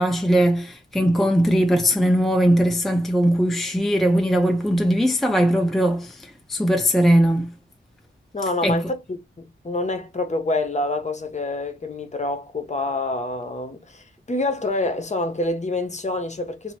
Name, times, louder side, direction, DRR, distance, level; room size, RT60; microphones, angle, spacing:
voice 1, 0.0-7.5 8.6-8.8, equal, ahead, 0.5 m, -20 dB
voice 2, 8.3-16.7, left 2 dB, 35° left, 0.9 m, -27 dB
2.9 x 2.7 x 4.1 m
wide cardioid pair, 125°, 21 cm